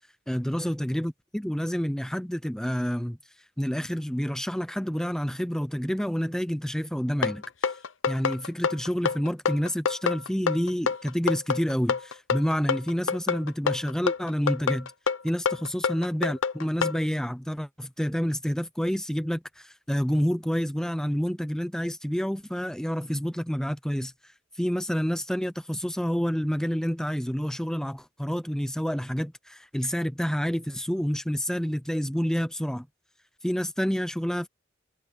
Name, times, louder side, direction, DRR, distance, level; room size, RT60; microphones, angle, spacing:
voice 1, 0.3-3.2 3.6-7.7 8.1-14.9 15.2-24.1 24.6-32.9 33.4-34.5, equal, 5° left, 0.6 m, -28 dB
sound 1, 7.2-17.0, left 5 dB, 90° left, 0.7 m, -27 dB
head